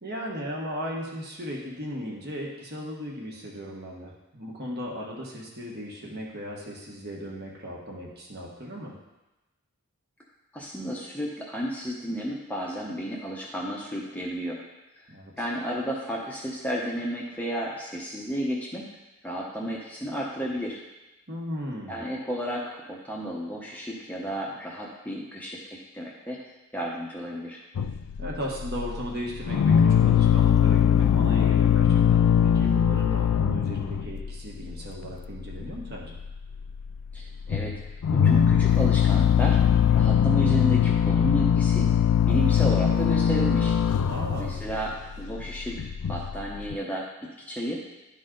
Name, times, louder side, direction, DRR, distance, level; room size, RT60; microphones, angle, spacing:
voice 1, 0.0-8.9 15.1-15.5 21.3-22.0 28.2-36.2 44.1-44.6, equal, 45° right, -2 dB, 1.3 m, -36 dB
voice 2, 10.5-14.6 15.0-15.1 15.4-18.9 19.2-20.8 21.9-26.4 26.7-27.6 37.1-37.8 38.1-39.6 39.9-41.9 42.3-43.8 44.4-47.1 47.5-47.8, equal, 5° left, -3 dB, 0.7 m, -32 dB
sound 1, 27.8-29.1 29.4-34.4 34.6-35.1 35.4-35.9 36.2-36.9 37.2-46.8, left 8 dB, 85° left, 0.3 m, -21 dB
11.0 x 4.1 x 3.8 m, 1.0 s
head